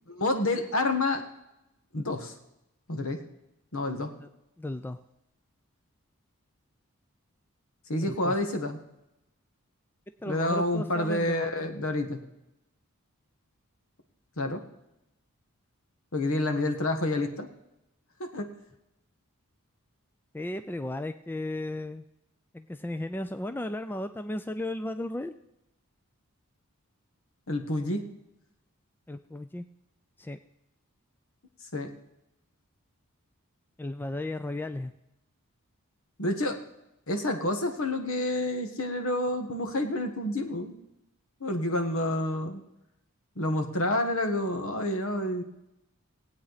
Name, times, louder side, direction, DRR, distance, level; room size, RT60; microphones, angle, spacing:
voice 1, 0.1-1.2 1.9-2.3 2.9-3.2 3.7-4.1 7.9-8.8 10.2-12.2 14.4-14.6 16.1-17.5 18.2-18.5 27.5-28.0 31.7-31.9 36.2-36.6 37.1-40.7 41.4-42.6 43.4-45.4, left 1 dB, 70° left, 6 dB, 1.5 m, -28 dB
voice 2, 4.6-5.0 8.0-8.4 10.2-11.5 20.3-22.1 22.5-25.3 29.1-29.6 30.2-30.4 33.8-34.9, left 1 dB, 10° left, 9 dB, 0.3 m, -35 dB
19.5 x 8.7 x 4.1 m, 0.89 s
head